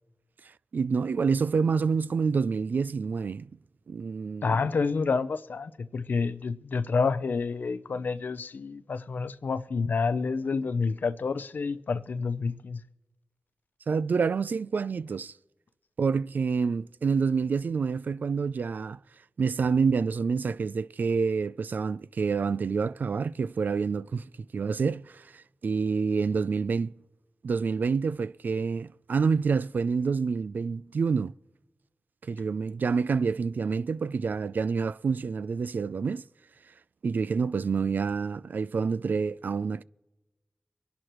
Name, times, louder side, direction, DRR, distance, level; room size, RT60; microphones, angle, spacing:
voice 1, 0.7-3.5 3.9-4.7 13.9-15.3 16.0-19.0 19.4-24.2 24.5-27.0 27.4-31.3 32.3-36.3 37.0-39.8, right 5 dB, 75° right, 0.3 m, -27 dB
voice 2, 4.4-12.8, left 4 dB, 80° left, 0.6 m, -29 dB
24.5 x 11.0 x 3.0 m
cardioid pair, 55°, 3 cm